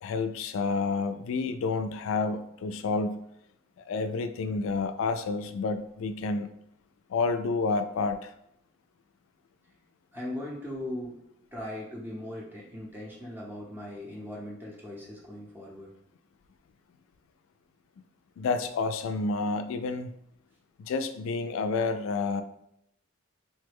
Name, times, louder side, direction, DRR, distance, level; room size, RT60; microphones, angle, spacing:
voice 1, 0.0-3.3 3.9-6.5 7.1-8.3 18.4-20.1 20.8-22.4, left 4 dB, 85° left, 10 dB, 0.3 m, -29 dB
voice 2, 10.1-11.2 11.5-15.9, left 1 dB, 10° right, -4 dB, 0.6 m, -39 dB
3.1 x 2.1 x 3.3 m, 0.76 s
head